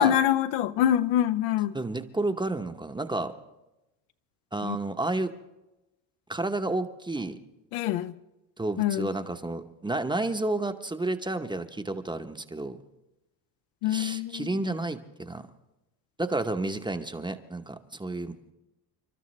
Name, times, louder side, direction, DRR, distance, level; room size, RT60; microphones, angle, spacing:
voice 1, 0.0-1.7 4.6-4.8 7.7-8.1 8.8-9.1 13.8-14.5, left 11 dB, 75° left, 0.8 m, -25 dB
voice 2, 1.7-3.3 4.5-5.3 6.3-7.4 8.6-12.8 13.9-15.5 16.2-18.5, right 2 dB, 10° right, 0.8 m, -31 dB
30.0 x 12.0 x 3.2 m
supercardioid pair, 85°, 49 cm